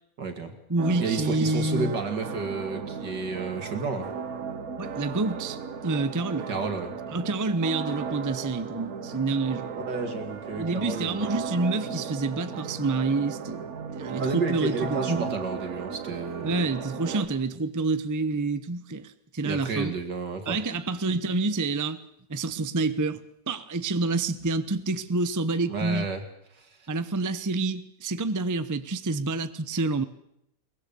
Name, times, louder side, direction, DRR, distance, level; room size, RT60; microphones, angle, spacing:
voice 1, 0.2-0.5 1.0-4.1 6.5-6.9 9.9-11.3 14.1-16.6 19.4-20.6 25.7-26.2 26.6-26.7, right 4 dB, 80° right, 2.9 m, -31 dB
voice 2, 0.7-2.0 4.8-6.5 7.1-9.7 10.5-13.7 13.9-15.3 16.4-20.0 20.5-22.0 22.3-26.1 26.9-30.0, right 3 dB, 20° right, 0.4 m, -28 dB
sound 1, 0.8-17.3, right 6 dB, 60° right, 1.7 m, -36 dB
22.5 x 19.5 x 7.0 m
omnidirectional pair, 1.8 m